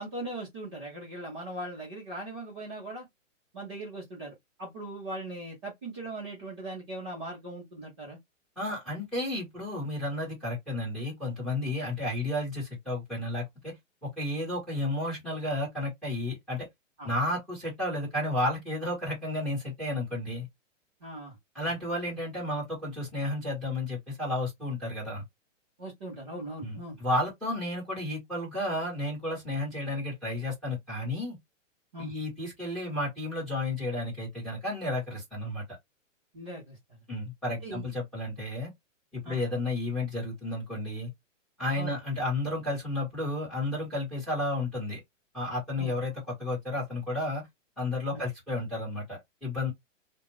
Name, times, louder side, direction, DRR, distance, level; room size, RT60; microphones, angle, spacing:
voice 1, 0.0-3.1 3.5-8.2 17.0-17.1 21.0-21.7 25.8-27.0 31.9-32.1 36.3-36.8 37.6-37.9 39.2-39.4 41.8-42.0 45.8-46.0 48.1-48.2, right 1 dB, 20° right, 0.7 m, -40 dB
voice 2, 8.6-13.7 14.0-16.7 17.0-20.5 21.5-25.2 26.6-31.4 32.0-35.6 37.1-38.7 39.1-41.1 41.6-45.0 45.3-46.1 46.4-47.4 47.8-49.7, left 1 dB, ahead, 1.0 m, -32 dB
2.4 x 2.2 x 3.0 m
hypercardioid pair, 175°, 38 cm